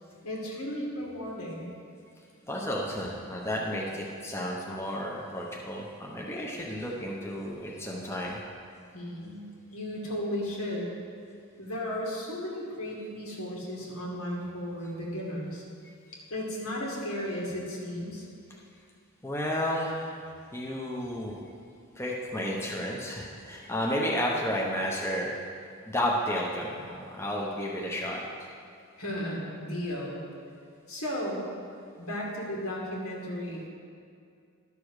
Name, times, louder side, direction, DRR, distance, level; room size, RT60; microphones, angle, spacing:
voice 1, 0.2-1.7 8.9-10.9 11.6-15.6 16.3-18.3 29.0-30.2 30.9-31.4 32.0-33.7, equal, 80° left, -3 dB, 2.3 m, -35 dB
voice 2, 2.5-8.4 15.8-15.9 19.2-20.1 20.5-21.4 22.0-25.3 25.9-28.2, equal, 10° left, -3 dB, 0.9 m, -32 dB
12.0 x 6.8 x 4.9 m, 2.3 s
head